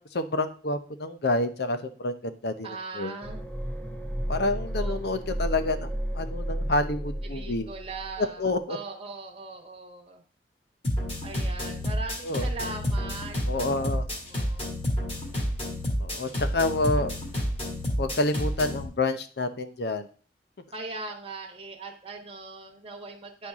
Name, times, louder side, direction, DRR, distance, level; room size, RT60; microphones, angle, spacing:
voice 1, 0.0-3.2 4.3-7.7 8.4-8.8 12.2-12.5 13.5-14.0 16.0-17.1 18.0-20.1, left 2 dB, 60° left, 10 dB, 0.7 m, -28 dB
voice 2, 2.6-3.5 4.7-5.5 7.3-10.2 11.2-14.7 15.0-15.3 20.7-23.5, right 3 dB, 30° right, 1 dB, 1.2 m, -40 dB
sound 1, 3.2-8.2 8.5-8.6, equal, 10° left, 0.6 m, -33 dB
sound 2, 10.8-18.8, left 1 dB, 35° left, 1.9 m, -29 dB
9.9 x 4.5 x 3.6 m, 0.40 s
head